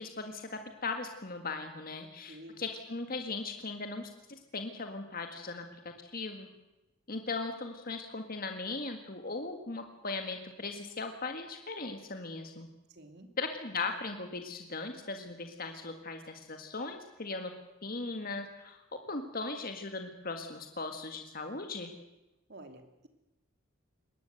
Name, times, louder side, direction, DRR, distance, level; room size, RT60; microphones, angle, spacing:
voice 1, 0.0-6.5 7.1-12.7 13.4-17.5 17.8-21.9, left 3 dB, 45° left, 5 dB, 1.8 m, -38 dB
voice 2, 2.0-2.6 12.9-13.4 22.5-23.1, right 1 dB, 55° right, 6 dB, 2.8 m, -51 dB
22.0 x 18.5 x 7.9 m, 0.98 s
head